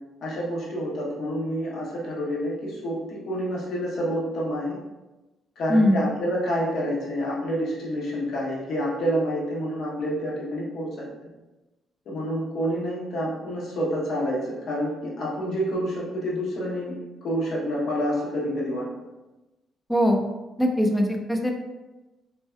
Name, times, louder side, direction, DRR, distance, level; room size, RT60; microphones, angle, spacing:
voice 1, 0.2-4.8 5.6-11.1 12.1-18.9, equal, 70° left, -4 dB, 0.7 m, -28 dB
voice 2, 19.9-20.2 20.6-21.5, equal, ahead, 2 dB, 0.4 m, -21 dB
2.6 x 2.2 x 2.3 m, 1.1 s
cardioid pair, 90°, 0 cm